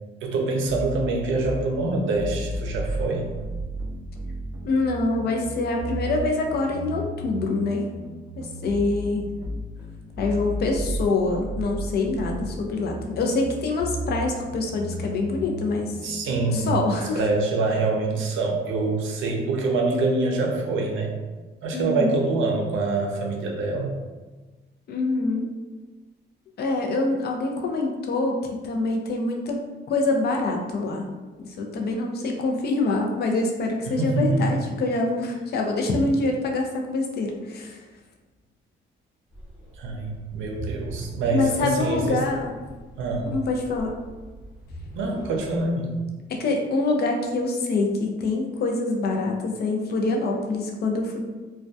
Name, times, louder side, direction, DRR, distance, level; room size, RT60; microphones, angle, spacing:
voice 1, 0.2-3.3 16.0-16.7 17.1-21.1 21.6-24.0 34.0-34.5 39.8-42.2 43.0-43.3 44.9-45.9, right 3 dB, 75° right, 0 dB, 0.5 m, -25 dB
sound 1, 0.7-16.6, right 1 dB, 15° right, 0.4 m, -34 dB
voice 2, 4.6-7.9 8.4-9.3 10.2-16.0 16.5-17.2 21.7-22.1 24.9-25.5 26.6-28.4 28.6-29.6 29.9-31.1 31.4-37.8 41.3-42.6 43.3-43.9 46.3-51.3, left 3 dB, 55° left, 1 dB, 0.5 m, -25 dB
sound 2, 39.3-45.6, equal, 25° left, 0.9 m, -40 dB
2.2 x 2.1 x 2.6 m, 1.2 s
cardioid pair, 90°, 20 cm